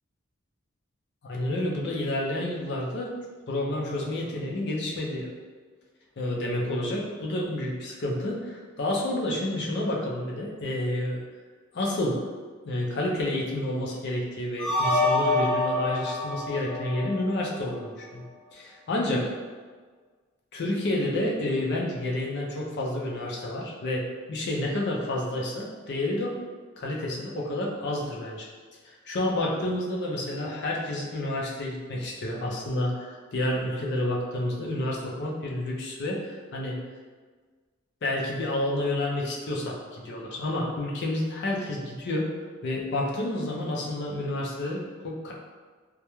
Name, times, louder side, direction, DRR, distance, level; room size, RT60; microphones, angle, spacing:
voice 1, 1.2-3.1 3.5-5.3 6.2-11.2 11.7-12.2 12.6-18.2 18.5-19.3 20.5-26.4 26.8-28.5 28.9-36.8 38.0-42.3 42.6-45.3, left 1 dB, 55° left, -2 dB, 0.5 m, -29 dB
sound 1, 14.6-17.7, left 2 dB, ahead, 1.0 m, -26 dB
2.3 x 2.1 x 2.9 m, 1.5 s
head